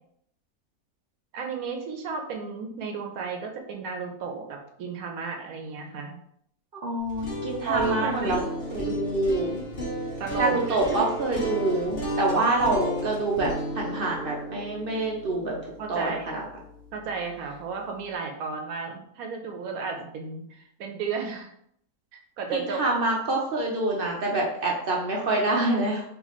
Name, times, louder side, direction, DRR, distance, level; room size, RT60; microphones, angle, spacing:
voice 1, 1.3-6.2 7.6-8.4 10.2-11.0 12.3-12.4 15.4-16.3 16.9-21.5 22.1-22.8, right 5 dB, 75° right, 3 dB, 1.1 m, -33 dB
voice 2, 6.8-8.4 8.7-9.6 10.4-15.5 15.9-16.4 22.5-26.0, right 2 dB, 50° right, -2 dB, 0.7 m, -26 dB
sound 1, 7.0-17.0, left 1 dB, 55° left, 1.6 m, -34 dB
4.0 x 3.3 x 3.0 m, 0.70 s
omnidirectional pair, 1.6 m